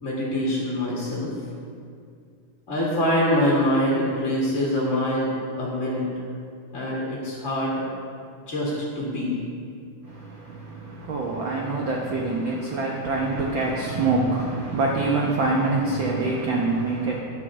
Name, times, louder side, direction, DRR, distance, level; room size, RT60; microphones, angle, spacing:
voice 1, 0.0-1.3 2.7-5.3 5.6-6.1 6.7-7.8 8.5-9.3, left 1 dB, 30° left, -5 dB, 1.7 m, -24 dB
voice 2, 10.0-17.2, right 3 dB, 65° right, -2 dB, 1.2 m, -25 dB
14.5 x 9.9 x 3.7 m, 2.3 s
omnidirectional pair, 3.6 m